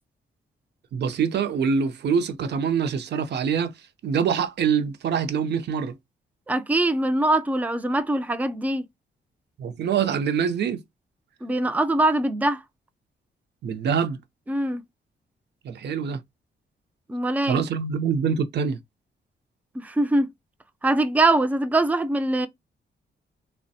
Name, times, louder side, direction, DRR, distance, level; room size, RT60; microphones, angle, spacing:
voice 1, 0.9-3.7 4.0-5.9 9.6-10.8 13.6-14.2 15.6-16.2 17.5-18.8, right 6 dB, 60° right, 0.5 m, -25 dB
voice 2, 6.5-8.8 11.4-12.6 14.5-14.8 17.1-17.6 19.8-20.3 20.8-22.5, right 2 dB, 10° right, 0.4 m, -22 dB
3.3 x 2.1 x 2.6 m
cardioid pair, 105°, 20 cm